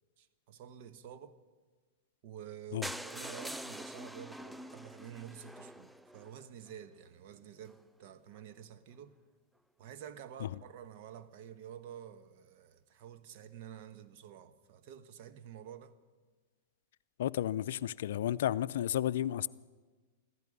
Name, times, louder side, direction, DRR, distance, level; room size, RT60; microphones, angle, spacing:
voice 1, 0.2-1.4 2.2-9.2 9.8-15.9, right 9 dB, 55° right, 1.1 m, -50 dB
sound 1, 2.8-6.7 7.3-7.4 7.7-7.8 8.1-8.2 8.3-8.4, equal, 5° right, 0.4 m, -45 dB
voice 2, 17.2-19.5, left 11 dB, 70° left, 0.4 m, -32 dB
15.5 x 15.0 x 5.3 m
hypercardioid pair, 110°, 0 cm